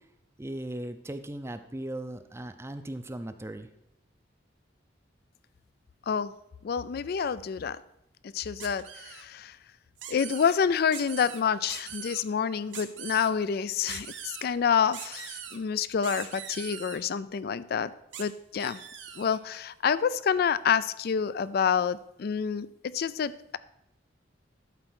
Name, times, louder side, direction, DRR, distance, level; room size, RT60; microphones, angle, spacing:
voice 1, 0.4-3.7, right 1 dB, 15° right, 9 dB, 0.5 m, -38 dB
voice 2, 6.6-7.8 8.3-9.5 10.1-17.9 18.2-18.8 19.2-23.6, left 7 dB, 55° left, 17 dB, 0.3 m, -28 dB
sound 1, 8.6-9.2 10.0-10.5 10.9-11.4 11.7-12.2 12.7-13.3 13.9-14.5 14.9-15.6 16.0-17.0 18.1-18.2 18.6-19.4, right 8 dB, 80° right, 1.1 m, -41 dB
11.5 x 4.4 x 6.2 m, 0.81 s
head